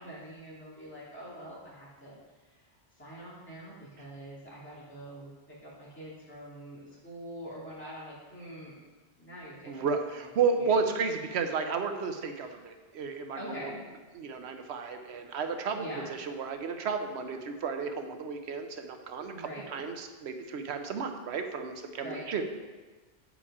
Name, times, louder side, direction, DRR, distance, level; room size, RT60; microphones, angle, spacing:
voice 1, 0.0-2.2 2.5-2.6 3.0-8.7 9.2-9.9 10.6-10.9 12.4-12.5 13.3-13.8 15.7-16.1 19.3-19.7 22.0-22.3, equal, 10° left, -8 dB, 2.3 m, -44 dB
voice 2, 9.7-13.7 14.1-22.4, right 5 dB, 85° right, 6 dB, 1.0 m, -33 dB
8.5 x 5.2 x 4.8 m, 1.3 s
omnidirectional pair, 1.1 m